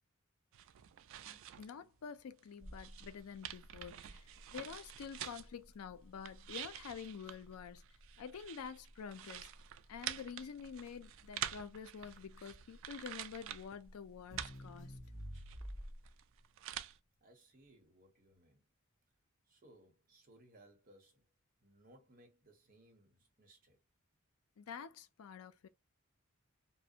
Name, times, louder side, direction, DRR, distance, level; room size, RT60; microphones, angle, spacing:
sound 1, 0.5-1.7 2.0-5.6 6.0-13.8 14.1-17.0, right 11 dB, 60° right, 0.3 m, -48 dB
voice 1, 1.2-7.8 8.2-9.5 9.9-15.0 24.6-25.7, left 6 dB, 75° left, 0.4 m, -48 dB
Crackle, 2.6-16.2, equal, 35° left, 1.1 m, -53 dB
voice 2, 17.2-18.6 19.5-21.2 21.6-23.8, right 1 dB, 40° right, 1.0 m, -64 dB
2.5 x 2.1 x 2.7 m
head